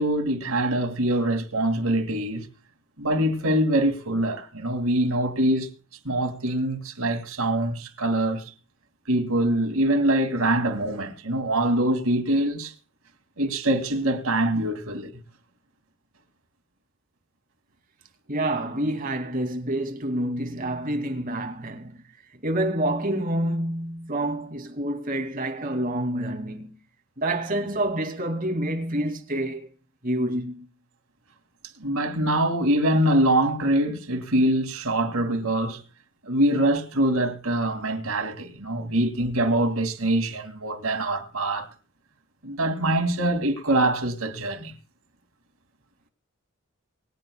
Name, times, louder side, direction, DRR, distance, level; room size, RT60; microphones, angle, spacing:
voice 1, 0.0-2.5 3.0-5.7 6.0-8.5 9.1-12.7 13.4-15.2 31.8-35.8 36.2-41.7 42.4-44.7, right 1 dB, 80° right, 2.5 m, -24 dB
voice 2, 18.3-22.0 22.4-26.8 27.2-29.7 30.0-30.7 38.8-39.0, right 1 dB, 40° right, 2.7 m, -28 dB
23.5 x 10.0 x 2.3 m
head